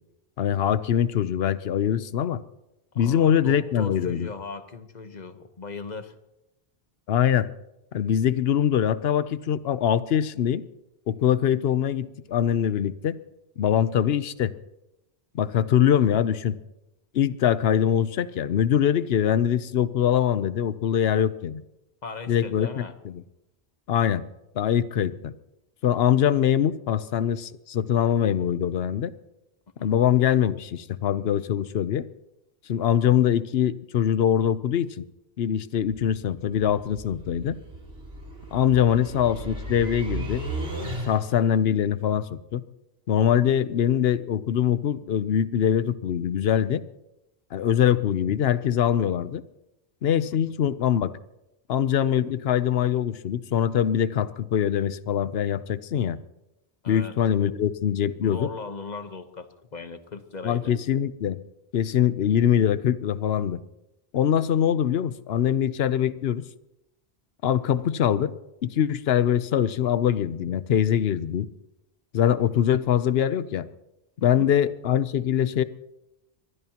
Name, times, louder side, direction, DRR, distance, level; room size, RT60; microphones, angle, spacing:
voice 1, 0.4-2.4 3.0-4.3 7.1-7.5 7.9-10.6 11.1-13.2 13.6-14.5 15.3-16.6 17.1-21.6 22.3-23.1 23.9-24.3 24.5-25.3 25.8-29.1 29.8-32.1 32.7-35.0 35.4-37.6 38.5-40.4 41.1-42.6 43.1-46.8 47.5-49.4 50.0-51.1 51.7-56.2 56.9-58.5 60.4-61.4 61.7-63.6 64.1-66.4 67.4-68.3 68.6-71.5 72.1-73.7 74.2-75.6, left 9 dB, 75° left, 15 dB, 0.9 m, -23 dB
voice 2, 2.9-6.1 22.0-22.9 29.8-29.9 38.9-39.0 56.8-57.2 58.2-60.8 74.2-74.5, left 4 dB, 45° left, 9 dB, 1.2 m, -38 dB
sound 1, 35.9-41.5, right 1 dB, 80° right, 3.5 m, -35 dB
23.5 x 20.0 x 2.9 m, 0.91 s
omnidirectional pair, 1.1 m